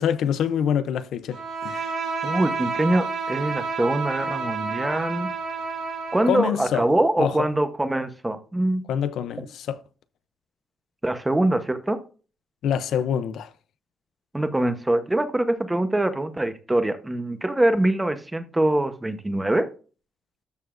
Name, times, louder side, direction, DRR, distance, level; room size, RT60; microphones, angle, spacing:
voice 1, 0.0-1.9 6.3-6.8 7.2-7.4 8.9-9.8 12.6-13.5, left 8 dB, 75° left, 0.6 m, -25 dB
Bowed string instrument, 1.3-6.5, right 4 dB, 45° right, 4.8 m, -30 dB
voice 2, 2.2-5.3 6.1-8.8 11.0-12.0 14.3-19.7, right 1 dB, 10° right, 0.9 m, -23 dB
13.0 x 6.8 x 2.5 m
cardioid pair, 150°, 0 cm